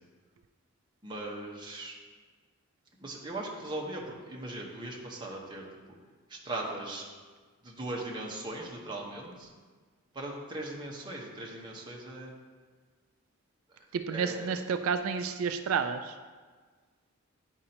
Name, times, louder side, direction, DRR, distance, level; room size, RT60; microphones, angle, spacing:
voice 1, 1.0-2.0 3.0-5.6 6.3-7.0 7.6-9.5 10.1-12.3 14.1-14.6, right 2 dB, 20° right, -2 dB, 1.1 m, -39 dB
voice 2, 13.9-16.2, right 6 dB, 85° right, 8 dB, 0.3 m, -30 dB
9.5 x 5.3 x 2.9 m, 1.5 s
head